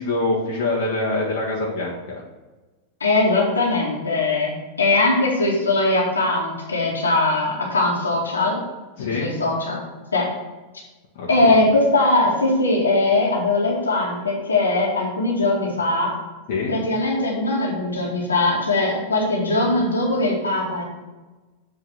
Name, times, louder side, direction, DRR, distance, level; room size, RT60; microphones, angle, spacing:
voice 1, 0.0-2.2 9.0-9.4 11.2-11.5 16.5-16.8, left 2 dB, 55° left, -4 dB, 1.7 m, -25 dB
voice 2, 3.0-8.6 9.2-9.8 10.1-10.3 11.3-16.1 16.7-20.8, left 2 dB, 75° left, -2 dB, 2.2 m, -20 dB
7.9 x 4.7 x 6.1 m, 1.2 s
figure-of-eight pair, 90°, 0 cm